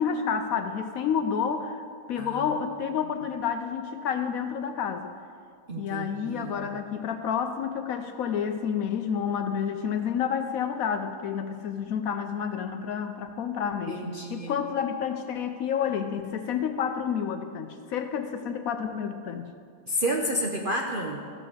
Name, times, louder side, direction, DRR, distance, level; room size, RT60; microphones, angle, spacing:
voice 1, 0.0-1.8 2.1-5.1 5.8-19.5, left 7 dB, 70° left, 7 dB, 0.9 m, -29 dB
voice 2, 5.7-6.8 13.9-14.5 19.9-21.2, equal, 55° right, 1 dB, 0.6 m, -31 dB
14.0 x 5.6 x 6.5 m, 2.3 s
omnidirectional pair, 1.8 m